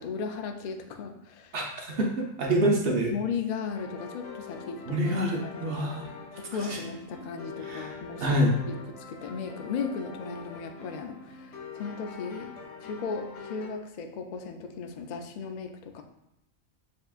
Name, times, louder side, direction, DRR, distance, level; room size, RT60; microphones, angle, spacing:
voice 1, 0.0-1.6 2.6-5.0 5.6-5.9 6.4-8.3 8.7-8.8 9.1-12.5 12.8-16.0, left 5 dB, 90° left, 5 dB, 0.3 m, -36 dB
voice 2, 1.5-3.1 4.9-6.1 6.7-6.8 7.6-7.9 8.2-8.6, right 1 dB, 55° right, 0 dB, 0.8 m, -26 dB
sound 1, 3.7-13.7, left 5 dB, 75° left, 1.0 m, -44 dB
6.6 x 2.8 x 2.4 m, 0.84 s
omnidirectional pair, 1.3 m